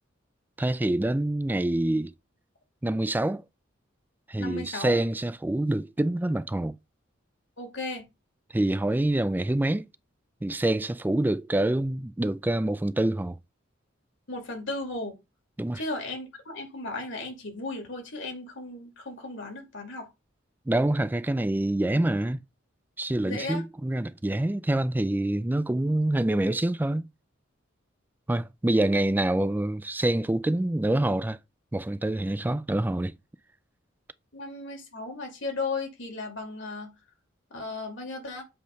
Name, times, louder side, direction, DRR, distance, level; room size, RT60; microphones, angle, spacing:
voice 1, 0.6-2.1 2.8-3.4 4.3-6.8 8.5-9.9 10.4-13.4 15.6-15.8 20.7-22.4 23.0-27.1 28.3-31.4 31.7-33.1, right 1 dB, 10° right, 0.3 m, -26 dB
voice 2, 4.4-5.0 7.6-8.0 14.3-15.2 15.7-20.1 23.2-23.6 34.3-36.9 37.5-38.4, left 2 dB, 70° left, 2.4 m, -35 dB
7.8 x 3.2 x 5.2 m
head